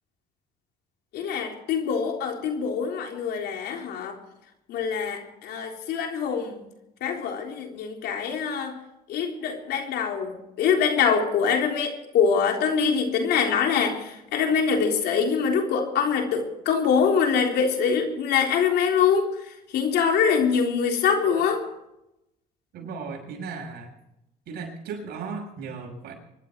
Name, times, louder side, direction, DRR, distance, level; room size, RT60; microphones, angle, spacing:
voice 1, 1.1-4.2 4.7-6.6 7.0-8.7 9.1-21.6, left 6 dB, 75° left, 2 dB, 3.7 m, -24 dB
voice 2, 22.7-23.9 24.5-26.1, right 5 dB, 70° right, 2 dB, 6.1 m, -36 dB
24.5 x 12.0 x 4.6 m, 0.87 s
cardioid pair, 110°, 17 cm